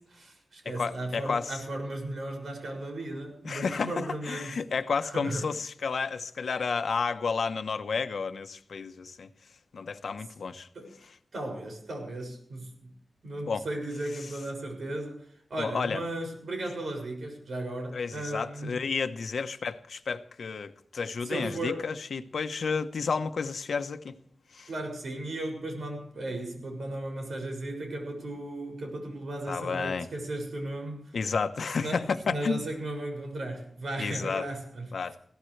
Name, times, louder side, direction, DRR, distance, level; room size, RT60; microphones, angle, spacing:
voice 1, 0.1-4.5 5.0-5.5 10.7-10.9 11.3-12.9 13.2-18.8 21.2-21.8 24.7-31.1 31.8-34.9, right 1 dB, 80° right, 6.6 m, -36 dB
voice 2, 0.6-1.6 3.4-9.3 9.7-10.7 13.5-13.6 15.6-16.0 17.9-24.2 24.5-24.7 29.5-30.1 31.1-32.6 34.0-34.5 34.9-35.2, left 5 dB, 85° left, 1.1 m, -31 dB
21.5 x 16.0 x 3.3 m
wide cardioid pair, 120°, 0 cm